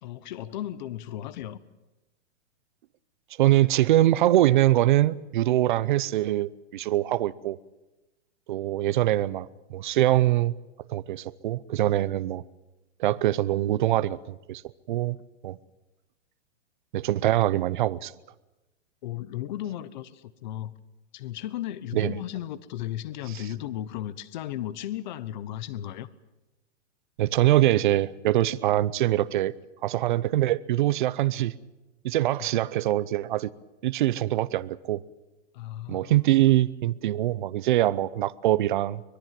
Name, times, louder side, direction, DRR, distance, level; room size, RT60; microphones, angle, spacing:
voice 1, 0.0-1.6 19.0-20.7 21.1-26.1 35.5-36.3, left 12 dB, 40° left, 1.1 m, -35 dB
voice 2, 3.4-7.6 8.5-10.5 10.9-12.4 13.0-14.6 14.9-15.2 15.4-15.6 16.9-18.1 21.9-22.2 27.2-29.5 29.8-31.5 32.0-33.5 33.8-35.0 35.9-39.0, right 14 dB, 40° right, 0.7 m, -23 dB
25.0 x 21.0 x 7.6 m
hypercardioid pair, 165°, 37 cm